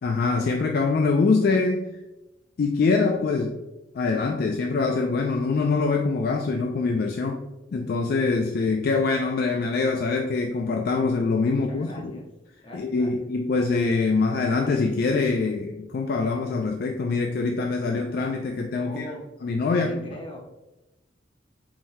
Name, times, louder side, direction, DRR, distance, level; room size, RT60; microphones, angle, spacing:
voice 1, 0.0-1.9 2.6-3.6 3.9-7.4 7.7-12.1 12.7-19.0 19.4-20.0, left 4 dB, 55° left, 3 dB, 0.3 m, -24 dB
voice 2, 11.5-12.2 12.6-13.3 18.8-19.2 19.7-20.4, equal, 30° left, -1 dB, 0.9 m, -41 dB
4.2 x 3.8 x 2.7 m, 0.99 s
head